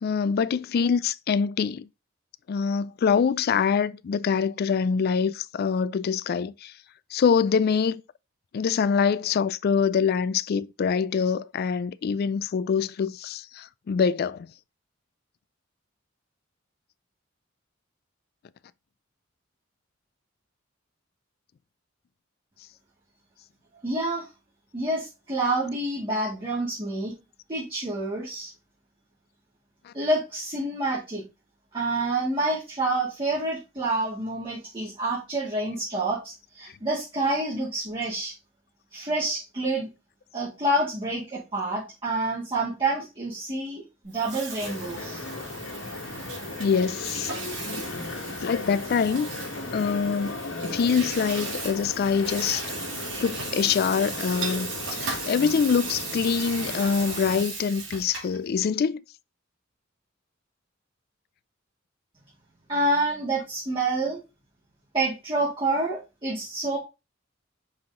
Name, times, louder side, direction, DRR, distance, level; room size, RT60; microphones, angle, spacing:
voice 1, 0.0-1.9 2.5-6.7 7.1-8.0 8.5-14.5 29.9-30.0 46.6-47.3 48.4-52.7 53.2-59.0, left 6 dB, 50° left, 0.3 m, -25 dB
voice 2, 23.8-24.3 24.7-27.1 27.5-28.5 29.9-31.2 31.7-38.3 38.9-39.9 40.3-45.2 62.7-64.2 64.9-66.8, right 2 dB, 25° right, 2.4 m, -28 dB
Water tap faucet / Sink (filling or washing), 44.0-58.4, right 4 dB, 65° right, 2.6 m, -37 dB
sound 1, 44.6-57.4, left 3 dB, 90° left, 1.4 m, -36 dB
5.6 x 4.7 x 3.7 m
head